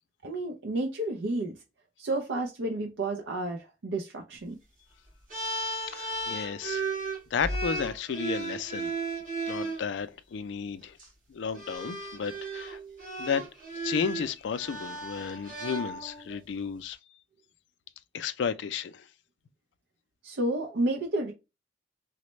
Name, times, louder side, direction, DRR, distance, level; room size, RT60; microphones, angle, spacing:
voice 1, 0.2-1.6 2.0-4.6 20.2-21.3, right 2 dB, 70° right, 0.5 m, -31 dB
sound 1, 5.3-9.8 10.8-11.0 11.5-16.4, right 2 dB, 45° right, 1.7 m, -35 dB
voice 2, 5.7-6.9 7.3-8.9 9.5-11.0 11.3-12.8 13.2-13.4 13.8-17.0 18.1-19.0, left 6 dB, 65° left, 0.4 m, -33 dB
4.0 x 2.1 x 3.0 m
head